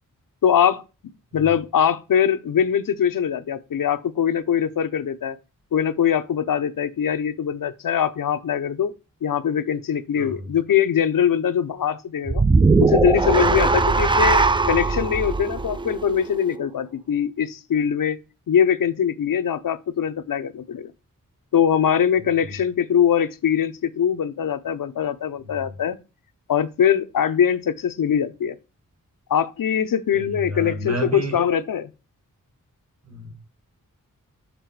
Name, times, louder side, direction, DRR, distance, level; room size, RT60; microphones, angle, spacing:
voice 1, 0.4-0.8 1.3-5.4 5.7-8.9 9.2-12.4 12.8-18.2 18.5-20.9 21.5-26.0 26.5-28.6 29.3-31.9, left 8 dB, 80° left, 0.7 m, -22 dB
voice 2, 10.1-10.5 22.2-22.5 25.4-25.6 30.1-31.3 33.0-33.3, equal, 50° right, 1.7 m, -32 dB
sound 1, 12.3-16.6, right 3 dB, 15° right, 0.3 m, -20 dB
6.8 x 3.6 x 4.6 m
wide cardioid pair, 80°, 33 cm